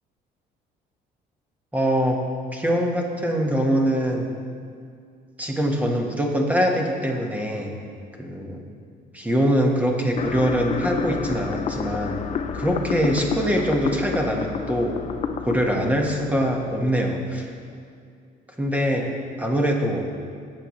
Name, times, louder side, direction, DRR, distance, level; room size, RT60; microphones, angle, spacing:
voice 1, 1.7-2.2 2.5-4.3 5.4-7.8 8.2-8.7 9.1-12.2 12.5-15.0 15.4-17.5 18.6-19.1 19.4-20.1, equal, 10° right, 1 dB, 1.4 m, -23 dB
sound 1, 10.2-17.2, left 6 dB, 40° left, 0.6 m, -30 dB
17.0 x 6.8 x 3.2 m, 2.2 s
cardioid pair, 110°, 17 cm